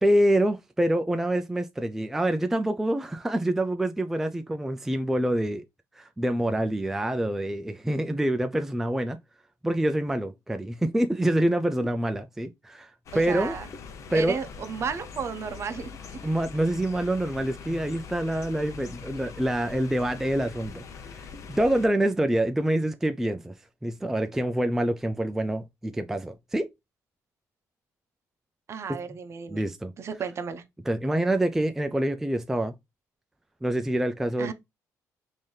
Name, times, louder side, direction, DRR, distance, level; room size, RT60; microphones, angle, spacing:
voice 1, 0.0-5.6 6.0-9.2 9.6-13.6 14.1-14.4 16.2-23.5 23.8-26.7 28.9-29.0 29.5-29.9 30.9-32.7 33.6-34.5, right 1 dB, 5° right, 0.3 m, -26 dB
sound 1, 13.1-21.9, left 6 dB, 55° left, 0.7 m, -42 dB
voice 2, 13.1-13.7 14.1-15.9 28.7-29.6 30.0-30.6 34.4-34.5, right 6 dB, 45° right, 0.7 m, -33 dB
3.8 x 2.6 x 3.2 m
cardioid pair, 105°, 6 cm